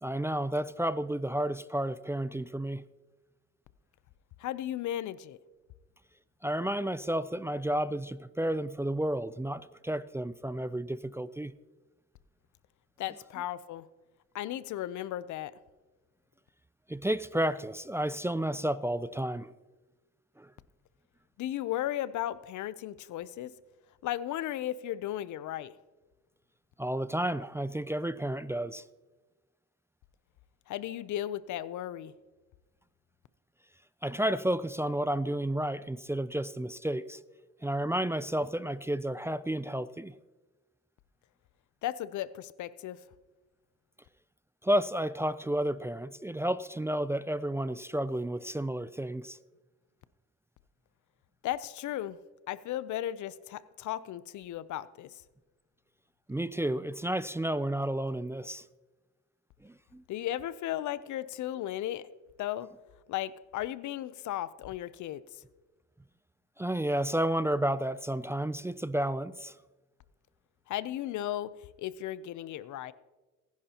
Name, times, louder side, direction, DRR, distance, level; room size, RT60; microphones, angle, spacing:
voice 1, 0.0-2.8 6.4-11.5 16.9-19.5 20.4-20.5 26.8-28.8 34.0-37.2 37.6-40.2 44.6-49.4 56.3-58.6 59.6-60.0 66.6-69.6, right 1 dB, 10° right, 0.4 m, -31 dB
voice 2, 4.4-5.4 13.0-13.9 14.3-15.5 21.4-23.5 24.0-25.7 30.7-32.1 41.8-43.0 51.4-52.2 52.5-55.1 60.1-62.1 62.4-62.7 63.1-65.4 70.7-71.5 71.8-72.9, left 12 dB, 75° left, 0.6 m, -35 dB
19.5 x 10.5 x 2.9 m
cardioid pair, 90°, 30 cm